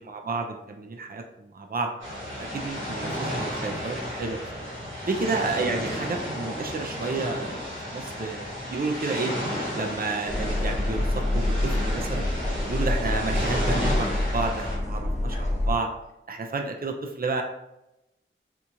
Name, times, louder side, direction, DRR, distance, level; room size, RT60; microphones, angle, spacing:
voice 1, 0.0-1.9 2.4-4.6 5.1-9.3 9.8-12.3 12.7-15.9 16.3-17.4, right 3 dB, 45° right, 3 dB, 0.4 m, -31 dB
sound 1, 2.0-14.8, equal, 65° right, 1.4 m, -33 dB
sound 2, 10.3-15.8, left 1 dB, 35° left, 0.8 m, -27 dB
4.3 x 2.4 x 2.7 m, 0.90 s
wide cardioid pair, 40°, 21 cm